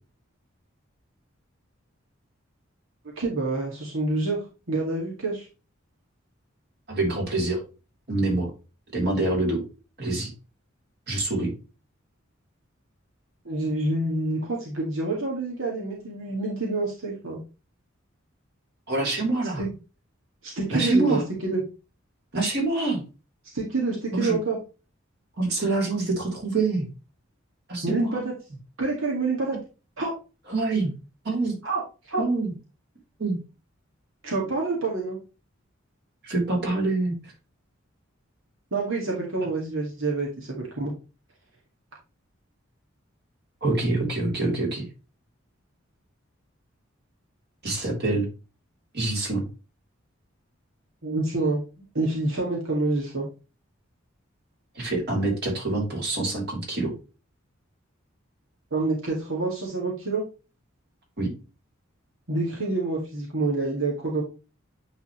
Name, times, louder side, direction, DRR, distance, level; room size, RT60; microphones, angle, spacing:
voice 1, 3.2-4.4 4.7-5.5 13.5-17.4 19.6-19.7 20.4-21.6 23.5-24.6 27.8-28.3 28.8-29.6 30.0-30.1 31.6-32.2 34.2-35.2 38.7-40.9 51.0-51.6 51.9-53.2 58.7-60.2 62.3-64.2, right 3 dB, 90° right, -3 dB, 2.1 m, -27 dB
voice 2, 6.9-7.6 8.1-8.5 8.9-9.6 10.0-10.3 11.1-11.5 18.9-19.6 20.7-21.2 22.3-23.0 24.1-24.4 25.4-26.9 27.7-28.2 30.5-30.9 31.2-31.6 32.2-32.5 33.2-33.4 36.2-37.3 43.6-44.8 47.6-48.3 48.9-49.5 54.8-56.9 61.2-61.3, right 2 dB, 55° right, -1 dB, 3.6 m, -25 dB
9.4 x 4.2 x 3.1 m, 0.31 s
head